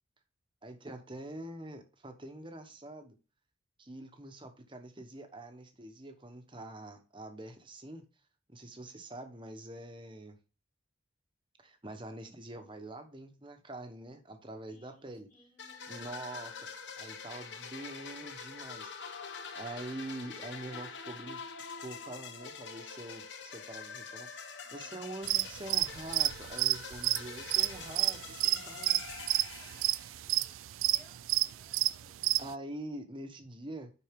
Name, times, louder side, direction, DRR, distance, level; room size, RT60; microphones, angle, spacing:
voice 1, 0.6-3.2 3.8-8.1 8.5-10.4 11.6-15.3 15.9-16.7 16.9-18.9 19.5-24.3 24.7-29.0 32.4-33.9, right 1 dB, 25° right, 1.0 m, -45 dB
voice 2, 14.7-16.2 16.5-17.1 24.6-24.9 29.4-30.0 30.3-32.3, left 1 dB, 15° left, 1.8 m, -64 dB
sound 1, 15.6-30.4, left 5 dB, 60° left, 1.0 m, -45 dB
sound 2, 25.2-32.5, right 16 dB, 80° right, 0.3 m, -30 dB
10.5 x 4.2 x 3.6 m
head